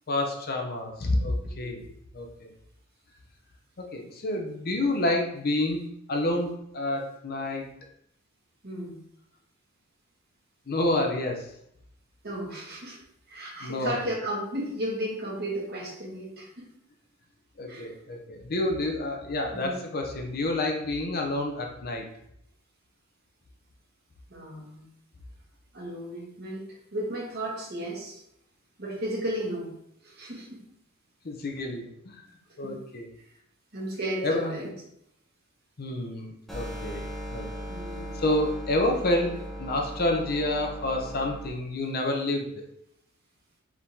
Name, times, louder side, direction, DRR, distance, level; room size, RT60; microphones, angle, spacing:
voice 1, 0.1-1.8 2.1-2.5 3.8-7.6 10.7-11.5 13.6-14.0 17.6-22.0 31.2-32.2 32.6-33.1 34.2-34.6 35.8-37.5 38.2-42.6, left 1 dB, 45° left, 2 dB, 0.6 m, -29 dB
voice 2, 8.6-8.9 12.2-13.0 13.3-16.7 17.7-17.9 19.5-19.8 24.3-24.8 25.7-26.7 26.9-28.2 28.8-29.7 30.0-30.5 32.6-32.8 33.7-34.7 37.7-38.2, right 1 dB, 45° right, -3 dB, 1.4 m, -34 dB
sound 1, 36.5-41.5, equal, ahead, 0.9 m, -38 dB
4.8 x 3.6 x 2.7 m, 0.74 s
head